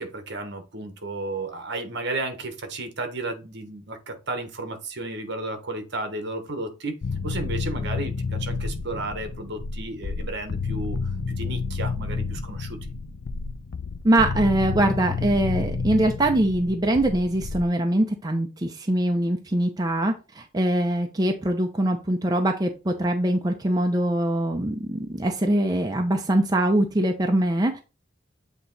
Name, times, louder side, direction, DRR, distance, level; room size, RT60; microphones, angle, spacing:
voice 1, 0.0-7.0 7.2-12.8, right 2 dB, 60° right, 1.2 m, -33 dB
sound 1, 7.0-17.6, left 4 dB, 60° left, 0.5 m, -30 dB
voice 2, 14.0-27.8, right 1 dB, 20° right, 0.6 m, -23 dB
8.2 x 2.9 x 4.0 m
head